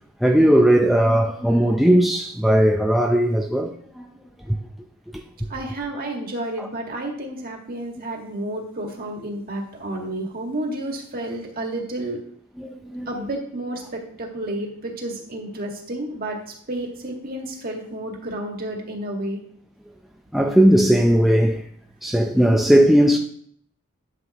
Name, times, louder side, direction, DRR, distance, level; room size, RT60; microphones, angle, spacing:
voice 1, 0.2-4.1 4.4-4.6 5.1-5.2 6.6-6.7 12.6-13.1 20.3-21.7 22.0-23.2, equal, ahead, 0.5 m, -18 dB
voice 2, 5.5-12.2 13.1-16.4 16.7-19.4, right 1 dB, 45° right, 1.8 m, -31 dB
11.5 x 7.3 x 2.9 m
head